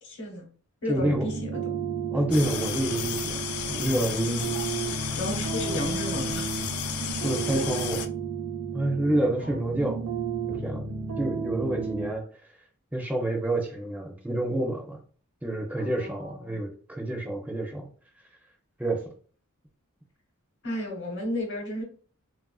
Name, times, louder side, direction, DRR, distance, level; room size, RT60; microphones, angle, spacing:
voice 1, 0.0-0.5 0.8-1.6 4.9-6.6 9.4-9.6 15.8-16.6 20.6-21.8, left 1 dB, 55° left, 2 dB, 0.9 m, -33 dB
voice 2, 0.9-1.2 2.1-4.6 7.2-8.0 8.7-10.0 10.5-10.8 11.2-12.3 12.9-15.0 15.4-17.9 18.8-19.1, right 1 dB, 5° right, 1 dB, 0.4 m, -28 dB
sound 1, 1.0-12.1, right 5 dB, 90° right, 0.7 m, -32 dB
sound 2, 2.3-8.1, left 8 dB, 85° left, 0.4 m, -33 dB
3.2 x 2.4 x 2.3 m, 0.43 s
head